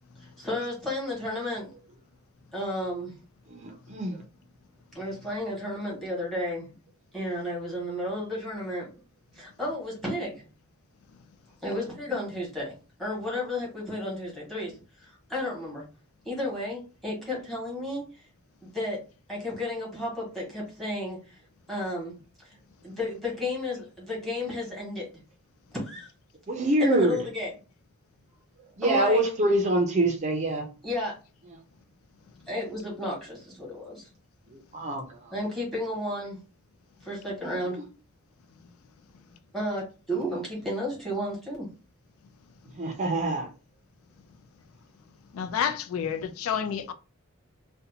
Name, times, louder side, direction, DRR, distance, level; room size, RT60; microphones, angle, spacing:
voice 1, 0.4-1.7 2.5-3.1 4.9-6.7 7.1-8.9 9.3-10.4 11.6-12.7 13.0-14.7 15.0-15.8 16.2-18.0 18.6-19.0 19.3-21.4 21.7-22.1 22.4-22.5 22.8-25.1 25.7-26.1 26.8-27.5 28.8-29.2 30.8-31.1 32.5-34.0 35.3-36.4 37.0-37.8 39.5-41.7, left 1 dB, ahead, 1.3 m, -32 dB
voice 2, 3.5-4.2 26.5-27.2 28.8-30.7 34.5-35.3 37.6-37.8 40.3-40.4 42.8-43.5, right 1 dB, 35° right, 0.4 m, -25 dB
voice 3, 45.3-46.9, left 8 dB, 85° left, 0.4 m, -29 dB
2.7 x 2.1 x 2.7 m
head